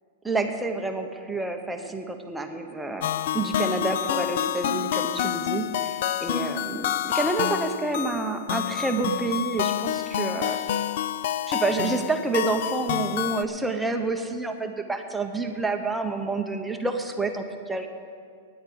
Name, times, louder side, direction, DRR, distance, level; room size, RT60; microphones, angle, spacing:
voice 1, 0.2-3.1 3.3-10.6 11.5-17.9, right 3 dB, 5° right, 4 dB, 0.7 m, -28 dB
sound 1, 3.0-13.5, left 11 dB, 55° left, 0.4 m, -28 dB
9.7 x 8.6 x 9.3 m, 2.3 s
supercardioid pair, 170°, 0 cm